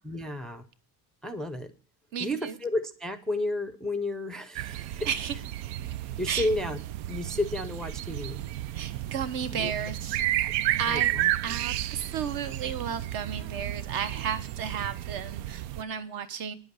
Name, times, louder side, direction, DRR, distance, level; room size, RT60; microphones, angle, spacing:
voice 1, 0.0-0.6 1.2-1.7 2.2-5.1 6.2-6.8 7.1-8.4 9.5-9.9 10.4-10.5 10.9-11.3, left 1 dB, ahead, 9 dB, 0.5 m, -32 dB
voice 2, 2.1-2.5 5.1-5.3 5.8-5.9 6.3-6.5 8.7-10.2 10.8-11.1 11.4-16.6, right 7 dB, 60° right, 11 dB, 1.3 m, -33 dB
sound 1, 4.6-15.8, right 14 dB, 85° right, 0.6 m, -32 dB
9.9 x 7.9 x 6.5 m, 0.42 s
cardioid pair, 175°, 40 cm